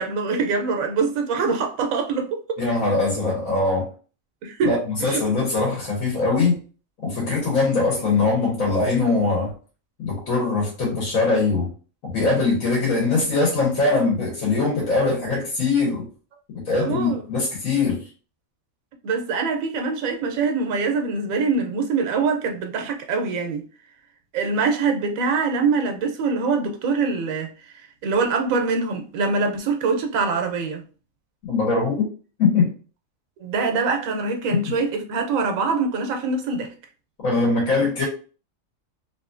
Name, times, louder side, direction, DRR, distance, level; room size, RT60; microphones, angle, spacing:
voice 1, 0.0-2.4 4.4-5.2 16.8-17.2 19.0-23.6 24.3-27.5 28.0-30.8 33.4-36.7, right 4 dB, 80° right, 1.0 m, -24 dB
voice 2, 2.6-3.9 4.6-6.6 7.0-9.5 10.0-11.7 12.0-16.1 16.5-18.0 31.4-32.1 32.4-32.7 34.6-34.7 37.2-38.0, left 3 dB, 85° left, 1.5 m, -22 dB
3.0 x 2.6 x 2.4 m
omnidirectional pair, 1.4 m